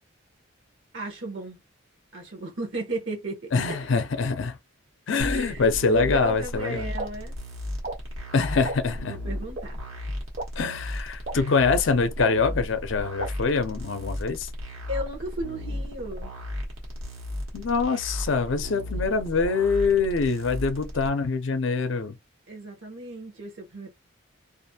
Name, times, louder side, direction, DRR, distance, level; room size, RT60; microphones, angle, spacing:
voice 1, 0.9-1.6 2.1-3.9 5.3-7.4 9.1-9.8 14.9-16.3 22.5-23.9, right 1 dB, 60° right, 0.9 m, -35 dB
voice 2, 3.5-4.6 5.1-6.9 8.3-9.2 10.6-14.5 17.5-22.2, left 4 dB, 60° left, 0.5 m, -24 dB
sound 1, 5.2-21.1, left 1 dB, 80° right, 1.1 m, -35 dB
sound 2, 6.2-6.3 7.0-7.1 7.8-8.0 8.6-8.8 9.5-9.6 10.4-10.5 11.2-11.3 12.2-12.3 13.2-13.3, right 2 dB, 40° right, 0.5 m, -31 dB
2.5 x 2.4 x 2.7 m
head